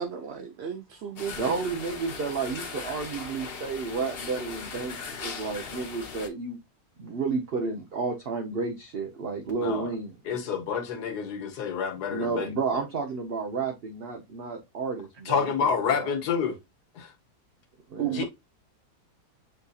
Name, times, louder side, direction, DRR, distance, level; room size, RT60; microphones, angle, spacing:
voice 1, 0.0-1.6 18.0-18.2, right 9 dB, 85° right, 0.5 m, -33 dB
sound 1, 1.2-6.3, left 5 dB, 45° left, 0.8 m, -39 dB
voice 2, 1.3-6.6 7.0-10.5 12.1-16.1 17.9-18.2, right 4 dB, 50° right, 0.8 m, -32 dB
voice 3, 10.3-12.8 15.2-16.6 17.0-17.1 18.1-18.2, left 6 dB, 80° left, 1.5 m, -29 dB
7.9 x 2.7 x 2.3 m
omnidirectional pair, 1.7 m